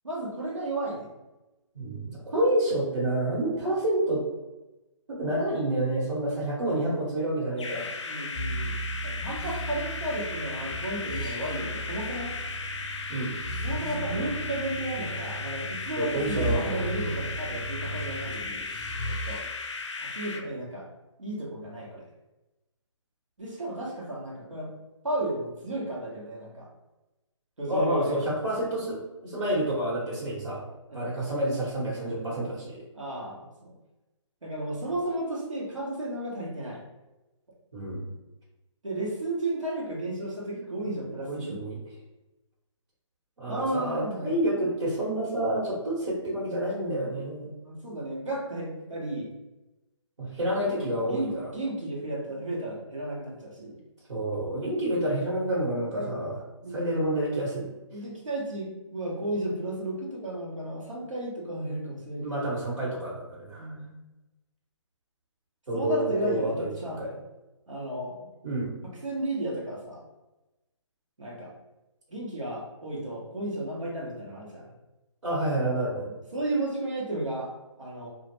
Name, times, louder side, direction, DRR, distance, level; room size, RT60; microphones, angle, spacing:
voice 1, 0.0-1.1 2.3-2.5 8.0-12.3 13.6-18.6 19.1-19.4 20.0-20.9 21.2-22.1 23.4-24.7 25.0-26.7 27.6-28.3 30.9-31.1 32.9-33.7 34.4-36.8 38.8-41.6 43.5-44.3 47.4-49.3 50.4-53.8 55.9-56.1 56.6-56.9 57.9-62.5 63.6-63.9 65.7-67.0 67.7-68.2 69.0-70.0 71.2-71.5 72.1-74.7 76.0-78.1, right 1 dB, 85° right, -4 dB, 1.1 m, -33 dB
voice 2, 1.7-4.2 5.1-7.8 13.1-13.3 16.0-17.1 27.7-30.6 30.9-32.8 37.7-38.0 40.5-40.9 41.3-41.8 43.4-47.6 50.2-51.5 54.1-56.4 56.7-57.7 62.2-63.7 65.7-67.1 68.4-68.7 75.2-76.1, right 1 dB, 70° right, -7 dB, 1.3 m, -29 dB
sound 1, 7.6-20.4, left 4 dB, 65° left, 0.4 m, -36 dB
sound 2, 8.3-19.4, right 1 dB, 15° left, 0.5 m, -36 dB
2.4 x 2.0 x 3.0 m, 1.0 s
figure-of-eight pair, 145°, 16 cm